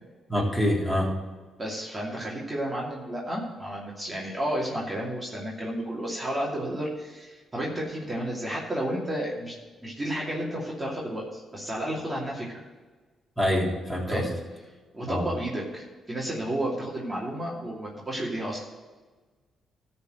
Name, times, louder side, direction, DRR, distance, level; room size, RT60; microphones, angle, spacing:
voice 1, 0.3-1.1 13.4-14.3 15.0-15.3, equal, ahead, -4 dB, 3.6 m, -25 dB
voice 2, 1.6-9.5 9.8-12.6 14.1-14.3 14.9-18.6, right 1 dB, 25° right, -4 dB, 2.7 m, -32 dB
13.5 x 4.5 x 7.9 m, 1.3 s
supercardioid pair, 55°, 0 cm